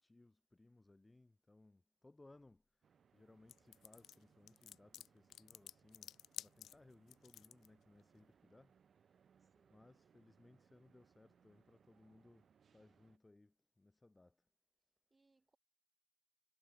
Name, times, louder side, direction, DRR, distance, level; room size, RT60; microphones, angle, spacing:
voice 1, 0.0-2.6 3.1-8.7 9.7-14.4, left 2 dB, 15° left, 1.7 m, -65 dB
sound 1, 2.8-13.2, right 7 dB, 55° right, 2.2 m, -73 dB
sound 2, 3.5-7.7, left 11 dB, 80° left, 0.7 m, -52 dB
voice 2, 9.4-9.9 15.1-15.6, right 3 dB, 25° right, 5.9 m, -77 dB
cardioid pair, 95°, 0 cm